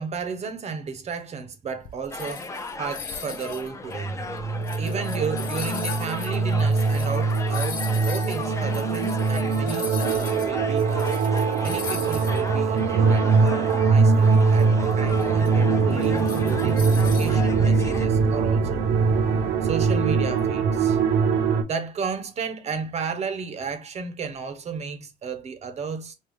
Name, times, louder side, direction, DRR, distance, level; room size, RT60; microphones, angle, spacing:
voice 1, 0.0-2.5 2.8-4.2 4.8-11.2 11.6-16.9 17.2-18.8 19.6-21.0 21.6-26.1, right 5 dB, 40° right, 0.6 m, -33 dB
sound 1, 1.8-10.5 10.8-12.5 12.8-12.9 13.5-17.4, left 7 dB, 55° left, 0.6 m, -39 dB
sound 2, 2.1-18.1, left 3 dB, 20° left, 0.5 m, -36 dB
sound 3, 4.1-21.6, right 5 dB, 85° right, 0.6 m, -22 dB
3.5 x 2.3 x 3.0 m
cardioid pair, 110°, 17 cm